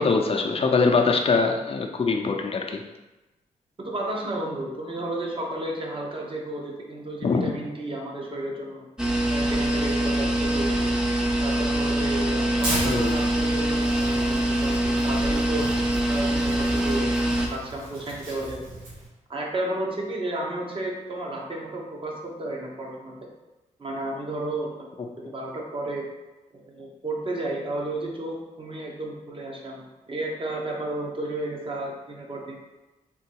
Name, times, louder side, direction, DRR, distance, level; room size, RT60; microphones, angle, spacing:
voice 1, 0.0-2.8 7.2-7.4 12.8-13.2, left 4 dB, 45° left, 2 dB, 0.6 m, -23 dB
voice 2, 3.8-8.8 9.3-10.9 11.4-15.7 16.1-18.6 19.3-23.2 23.8-24.9 25.2-26.1 26.5-32.6, right 1 dB, 40° right, -1 dB, 1.1 m, -32 dB
sound 1, 9.0-17.5, right 1 dB, 5° right, 0.7 m, -24 dB
Tearing, 12.6-19.1, right 1 dB, 85° right, 1.5 m, -36 dB
3.8 x 2.9 x 4.6 m, 1.1 s
cardioid pair, 80°, 14 cm